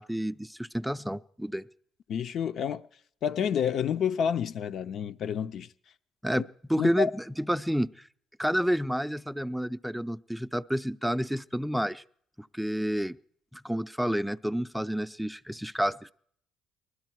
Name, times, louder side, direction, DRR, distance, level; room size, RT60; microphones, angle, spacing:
voice 1, 0.0-1.7 6.2-6.4 6.7-8.1 8.4-12.0 12.4-13.2 13.5-16.1, equal, ahead, 0.5 m, -30 dB
voice 2, 2.1-2.8 3.2-5.7 6.4-6.5 6.8-7.1, left 8 dB, 60° left, 0.6 m, -29 dB
20.0 x 13.0 x 4.5 m
supercardioid pair, 70°, 0 cm